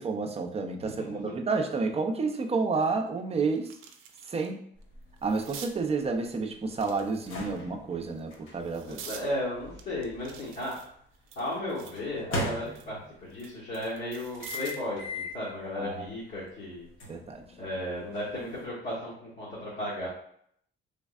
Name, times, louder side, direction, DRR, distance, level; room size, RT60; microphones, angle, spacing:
voice 1, 0.0-3.7 4.3-4.6 5.2-9.0 15.8-16.1 17.1-17.4, right 4 dB, 30° right, 3 dB, 0.5 m, -30 dB
voice 2, 0.8-1.3 8.8-10.8 11.4-16.9 17.6-20.1, left 1 dB, 65° left, -8 dB, 1.3 m, -35 dB
sound 1, 2.5-2.6 3.0-4.5 4.8-5.8 6.7-7.6 8.2-9.3 9.8-12.0 12.4-14.9 16.3-16.5, right 7 dB, 85° right, 0.5 m, -47 dB
sound 2, 4.8-10.9 12.0-13.3 14.4-15.4 15.9-16.1 17.0-18.6, left 1 dB, 80° left, 1.1 m, -40 dB
3.5 x 3.1 x 2.4 m, 0.67 s
cardioid pair, 90°, 20 cm